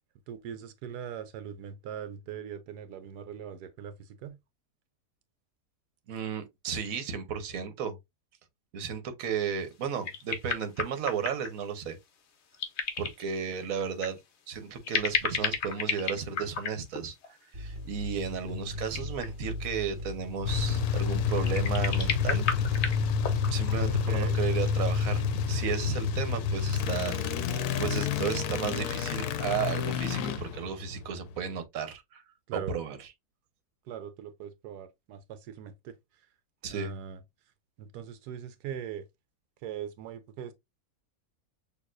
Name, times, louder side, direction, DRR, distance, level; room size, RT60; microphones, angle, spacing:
voice 1, 0.3-4.4 23.9-24.4 32.5-32.8 33.9-36.3 36.7-37.2 37.8-39.0 39.6-40.5, right 8 dB, 85° right, 1.1 m, -40 dB
voice 2, 6.1-8.0 8.7-12.0 13.0-14.2 14.5-22.8 23.5-32.2 32.7-33.0 36.6-36.9, right 7 dB, 65° right, 1.2 m, -34 dB
sound 1, 9.7-9.8 10.0-11.6 12.5-13.3 14.0-14.2 14.8-17.3 18.5-18.6 18.8-19.5 21.4-23.8 24.7-24.8 25.9-26.1, left 6 dB, 55° left, 0.9 m, -32 dB
sound 2, 17.5-24.1, left 1 dB, 35° right, 1.1 m, -39 dB
sound 3, 20.5-31.6, left 6 dB, 80° left, 1.1 m, -29 dB
6.3 x 2.9 x 2.5 m
omnidirectional pair, 1.7 m